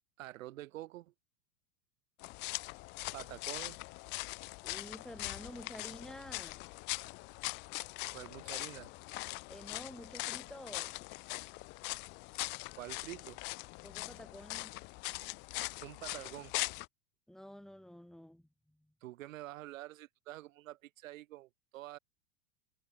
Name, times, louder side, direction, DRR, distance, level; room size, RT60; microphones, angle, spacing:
voice 1, 0.2-1.1 3.1-3.8 8.1-8.9 12.8-13.4 15.8-16.5 19.0-22.0, right 16 dB, 70° right, 1.8 m, -47 dB
sound 1, 2.2-16.9, left 27 dB, 25° left, 0.8 m, -41 dB
voice 2, 4.6-6.6 9.5-11.0 13.8-14.7 17.3-18.9, left 1 dB, ahead, 6.5 m, -50 dB
supercardioid pair, 170°, 42 cm